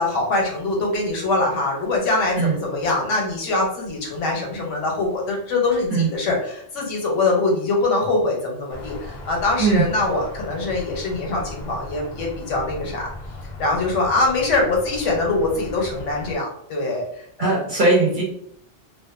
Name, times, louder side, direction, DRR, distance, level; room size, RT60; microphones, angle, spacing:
voice 1, 0.0-13.1 13.6-17.7, left 2 dB, 85° left, -1 dB, 1.1 m, -23 dB
sound 1, 8.7-16.4, left 2 dB, 55° left, 0.5 m, -37 dB
voice 2, 17.4-18.2, right 3 dB, 50° right, -2 dB, 0.7 m, -19 dB
2.5 x 2.2 x 2.4 m, 0.67 s
omnidirectional pair, 1.2 m